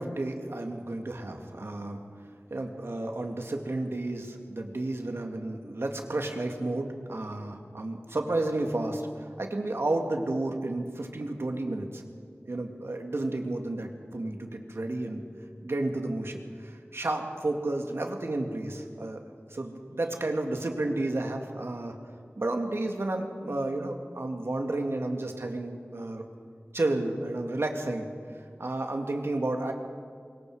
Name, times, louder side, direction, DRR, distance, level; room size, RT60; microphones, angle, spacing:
voice 1, 0.0-2.0 2.5-12.0 12.4-15.2 15.6-19.2 19.5-22.0 22.4-26.3 26.7-29.7, right 2 dB, 85° right, 3 dB, 2.1 m, -32 dB
24.5 x 22.0 x 4.9 m, 2.2 s
wide cardioid pair, 60°, 4 cm